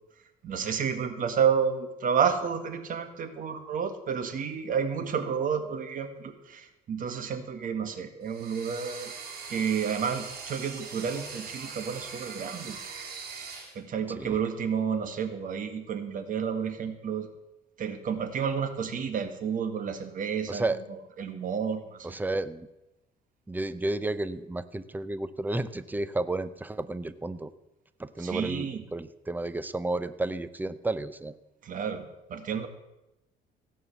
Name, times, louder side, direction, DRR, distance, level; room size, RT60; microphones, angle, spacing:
voice 1, 0.4-9.1 9.5-12.8 13.8-17.3 17.8-22.1 28.2-28.8 31.6-32.7, right 7 dB, 50° right, 8 dB, 1.7 m, -30 dB
sound 1, 8.2-13.8, right 5 dB, 70° right, 3.6 m, -41 dB
voice 2, 20.5-20.8 22.0-22.7 23.5-27.5 28.0-31.4, right 2 dB, 10° right, 14 dB, 0.7 m, -32 dB
16.5 x 5.5 x 8.2 m, 0.95 s
cardioid pair, 110°, 17 cm